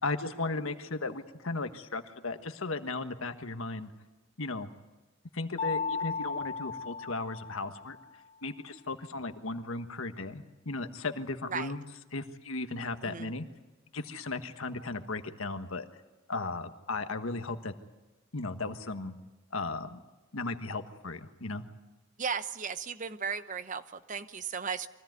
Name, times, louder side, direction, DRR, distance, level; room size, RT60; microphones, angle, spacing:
voice 1, 0.0-3.9 4.4-4.7 5.3-8.0 8.4-11.8 12.1-13.4 13.9-15.9 16.3-17.7 18.3-19.1 19.5-20.0 20.3-21.6, left 3 dB, 75° left, 7 dB, 1.5 m, -36 dB
Mallet percussion, 5.6-8.1, left 5 dB, 30° left, 0.7 m, -35 dB
voice 2, 13.0-13.3 22.2-24.9, right 6 dB, 35° right, 12 dB, 0.9 m, -36 dB
24.0 x 16.5 x 9.4 m, 1.2 s
head